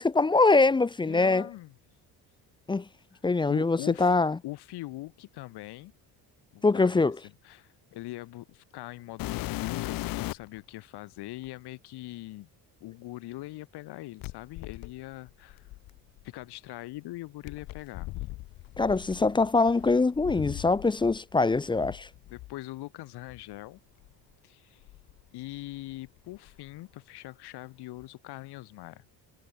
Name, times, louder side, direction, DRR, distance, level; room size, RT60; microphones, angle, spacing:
voice 1, 0.0-1.5 2.7-2.8 3.2-4.4 6.6-7.2 18.8-22.1, left 3 dB, 10° left, 0.6 m, -23 dB
voice 2, 1.0-1.7 3.5-4.2 4.4-5.9 6.5-7.0 7.2-12.5 12.8-15.7 16.2-18.1 22.3-23.8 24.4-24.9 25.3-29.0, left 18 dB, 85° left, 3.6 m, -42 dB
sound 1, 9.2-10.6 11.4-11.5 14.2-16.3 17.4-21.2 21.5-22.5 23.3-23.4 24.0-24.1 24.8-25.9 26.2-26.7 28.0-28.1, left 19 dB, 60° left, 0.6 m, -38 dB
cardioid pair, 160°, 38 cm